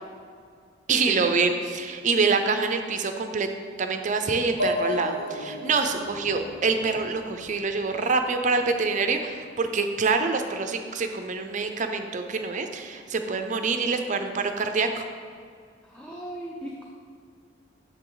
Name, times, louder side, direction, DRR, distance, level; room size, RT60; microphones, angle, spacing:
voice 1, 0.9-3.5 3.8-15.0, right 4 dB, 40° right, 6 dB, 0.5 m, -26 dB
sound 1, 4.6-8.3, left 2 dB, 80° left, 1.5 m, -33 dB
voice 2, 15.8-16.8, right 1 dB, 5° left, -3 dB, 0.6 m, -36 dB
9.2 x 6.7 x 3.9 m, 2.2 s
head